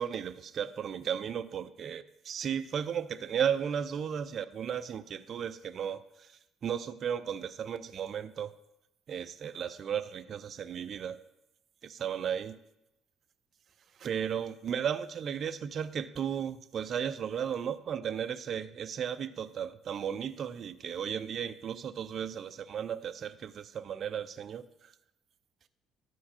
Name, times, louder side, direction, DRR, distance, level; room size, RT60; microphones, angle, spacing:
voice 1, 0.0-6.3 6.6-8.5 9.1-11.2 11.8-12.5 14.0-24.6, right 8 dB, 50° right, 11 dB, 0.5 m, -35 dB
12.5 x 4.6 x 4.3 m, 0.87 s
cardioid pair, 95°, 0 cm